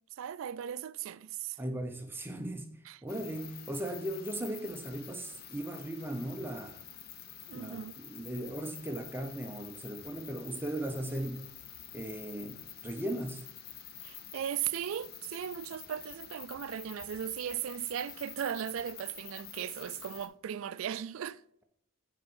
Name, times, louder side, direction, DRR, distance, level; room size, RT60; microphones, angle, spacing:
voice 1, 0.2-1.6 2.9-3.0 7.5-7.9 14.0-21.4, right 9 dB, 75° right, 0.3 m, -37 dB
voice 2, 1.6-2.7 3.0-6.8 7.5-11.5 11.9-13.5, right 1 dB, 10° right, 0.6 m, -38 dB
sound 1, 3.1-20.3, left 9 dB, 50° left, 0.7 m, -48 dB
7.7 x 4.8 x 4.3 m
head